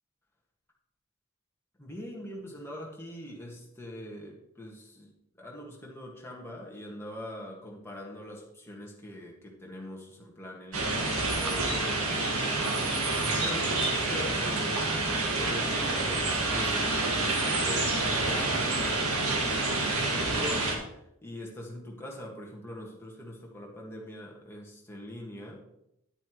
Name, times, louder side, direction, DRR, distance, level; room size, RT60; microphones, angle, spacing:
voice 1, 1.8-5.1 5.4-12.3 13.0-14.8 15.3-25.6, left 1 dB, 10° left, -2 dB, 1.7 m, -43 dB
sound 1, 10.7-20.8, right 2 dB, 85° right, 1.9 m, -28 dB
10.0 x 8.8 x 3.1 m, 0.81 s
head